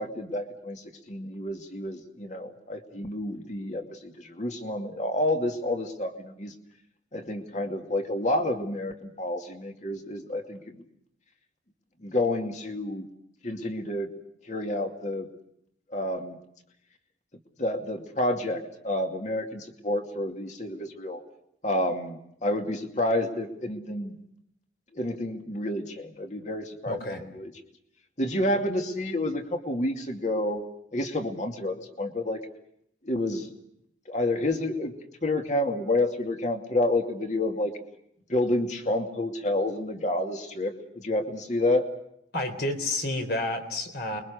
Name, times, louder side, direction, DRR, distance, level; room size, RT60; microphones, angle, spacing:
voice 1, 0.0-6.5 7.1-10.8 12.0-13.1 13.4-14.1 14.5-15.3 15.9-16.4 17.6-21.2 21.6-24.2 24.9-27.5 28.2-30.6 30.9-32.4 33.0-33.5 34.1-34.9 35.2-37.7 38.3-41.9, left 1 dB, 40° left, 4 dB, 2.5 m, -29 dB
voice 2, 26.9-27.2 42.3-44.2, left 1 dB, 60° left, 6 dB, 3.8 m, -30 dB
28.5 x 22.5 x 6.6 m, 0.75 s
head